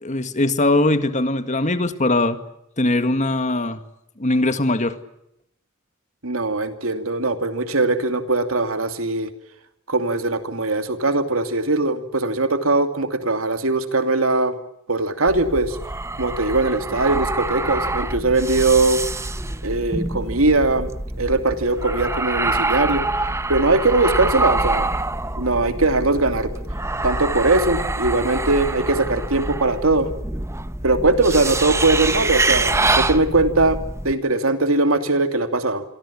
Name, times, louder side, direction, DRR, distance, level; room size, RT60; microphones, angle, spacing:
voice 1, 0.0-2.4 2.8-3.8 4.2-5.0, left 2 dB, 35° left, 10 dB, 2.0 m, -20 dB
voice 2, 6.2-9.3 9.9-14.6 14.9-15.8 16.2-19.0 19.6-20.9 21.2-24.9 25.4-26.5 27.0-30.1 30.8-33.8 34.0-35.8, right 2 dB, 85° right, 8 dB, 2.7 m, -20 dB
sound 1, 15.3-34.1, right 2 dB, 15° right, 1.1 m, -25 dB
28.0 x 23.5 x 8.6 m, 0.77 s
head